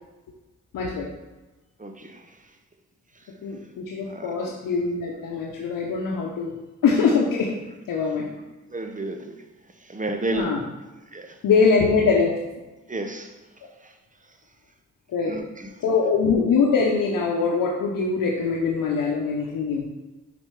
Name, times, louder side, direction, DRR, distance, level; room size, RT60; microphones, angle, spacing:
voice 1, 0.7-1.1 3.4-6.5 6.8-7.5 7.9-8.3 10.3-10.6 11.4-12.4 15.1-15.4 15.8-19.8, left 5 dB, 85° left, -2 dB, 0.8 m, -23 dB
voice 2, 1.8-2.2 4.1-4.5 8.7-9.4 9.8-10.5 11.1-11.4 12.9-13.3 13.8-13.9 15.3-15.7, right 2 dB, 25° right, 5 dB, 1.0 m, -32 dB
5.5 x 4.3 x 4.6 m, 1.1 s
cardioid pair, 50°, 32 cm